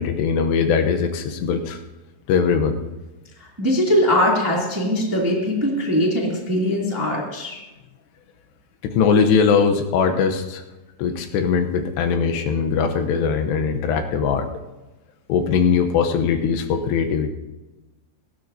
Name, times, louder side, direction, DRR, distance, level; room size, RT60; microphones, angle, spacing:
voice 1, 0.0-1.8 2.3-2.8 8.8-10.6 11.0-14.5 15.3-17.3, left 6 dB, 85° left, 6 dB, 3.1 m, -20 dB
voice 2, 3.6-7.6, left 1 dB, 10° right, -3 dB, 1.5 m, -21 dB
18.5 x 15.5 x 2.8 m, 1.1 s
omnidirectional pair, 4.8 m